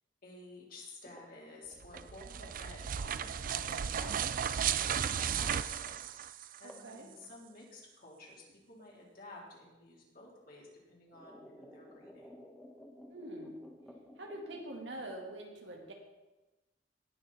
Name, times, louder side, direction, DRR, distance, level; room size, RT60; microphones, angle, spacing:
voice 1, 0.2-5.9 6.6-8.4 8.7-12.4, left 2 dB, 55° left, -3 dB, 3.5 m, -52 dB
sound 1, 1.0-3.4 4.2-4.3 5.5-5.7 6.0-6.1 6.7-6.9 7.2-8.0 9.2-9.3 10.2-10.3 10.7-15.3, equal, ahead, 1.4 m, -55 dB
sound 2, 1.8-6.8, right 8 dB, 50° right, 0.4 m, -35 dB
voice 2, 6.6-7.1 13.1-13.6 14.2-15.9, right 1 dB, 80° right, 1 dB, 2.2 m, -44 dB
18.5 x 6.7 x 4.2 m, 1.1 s
head